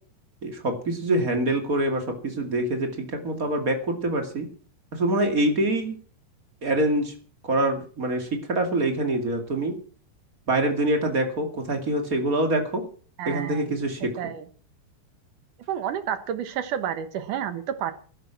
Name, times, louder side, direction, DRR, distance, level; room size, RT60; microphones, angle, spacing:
voice 1, 0.4-4.5 4.9-5.9 6.6-7.1 7.4-9.7 10.5-12.8 13.2-14.1, right 1 dB, 30° right, 5 dB, 1.7 m, -25 dB
voice 2, 13.2-13.7 14.2-14.4 15.7-17.9, right 9 dB, 65° right, 10 dB, 2.2 m, -30 dB
13.5 x 12.0 x 6.0 m, 0.41 s
omnidirectional pair, 4.9 m